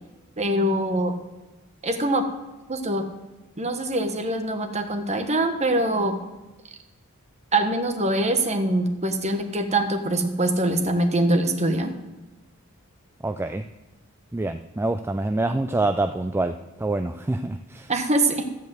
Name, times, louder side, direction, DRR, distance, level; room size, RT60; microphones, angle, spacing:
voice 1, 0.4-1.2 1.8-2.3 2.7-3.0 3.6-6.2 7.5-11.9 17.9-18.5, right 1 dB, 30° right, 6 dB, 1.2 m, -23 dB
voice 2, 13.2-13.6 14.3-17.9, right 2 dB, 10° right, 7 dB, 0.3 m, -26 dB
14.5 x 5.2 x 7.8 m, 1.1 s
head